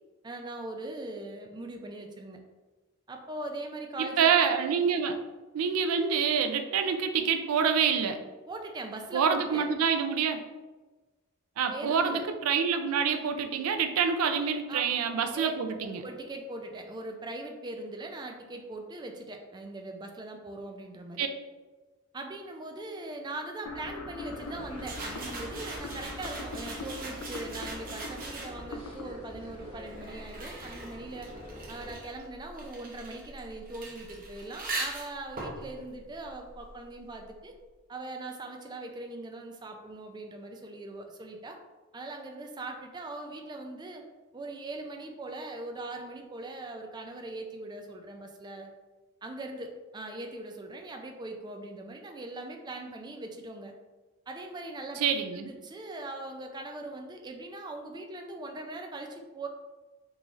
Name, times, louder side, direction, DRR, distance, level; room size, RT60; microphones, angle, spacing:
voice 1, 0.2-2.4 3.1-4.3 8.5-9.7 11.7-12.2 14.7-14.9 15.3-15.5 15.8-21.3 22.1-31.3 31.7-37.5 37.9-41.6 41.9-44.0 44.3-48.7 49.2-53.7 54.3-55.0 55.3-59.5, right 2 dB, 20° right, 3 dB, 0.3 m, -41 dB
voice 2, 4.0-5.2 5.5-8.2 9.1-10.4 11.6-16.0 21.2-21.3 55.0-55.5, right 6 dB, 85° right, 6 dB, 0.4 m, -27 dB
sound 1, 23.7-30.7, left 2 dB, 65° left, 0.4 m, -42 dB
sound 2, 24.2-31.9, equal, 25° left, 0.9 m, -47 dB
sound 3, 24.8-28.8 29.6-37.0, right 2 dB, 40° right, 0.7 m, -41 dB
3.8 x 3.0 x 2.4 m, 1.2 s
head